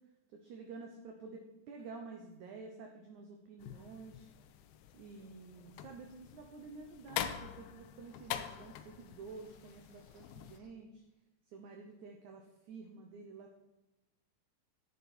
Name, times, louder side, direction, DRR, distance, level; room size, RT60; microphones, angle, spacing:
voice 1, 0.3-4.3 4.9-11.0 11.5-13.6, right 4 dB, 70° right, 3 dB, 1.9 m, -50 dB
sound 1, 1.8-1.9 2.2-2.4 2.6-2.8 7.6-10.7, right 1 dB, 20° right, 3.2 m, -70 dB
sound 2, 3.6-10.6, left 11 dB, 80° left, 2.4 m, -45 dB
10.5 x 10.5 x 4.4 m, 1.0 s
omnidirectional pair, 4.7 m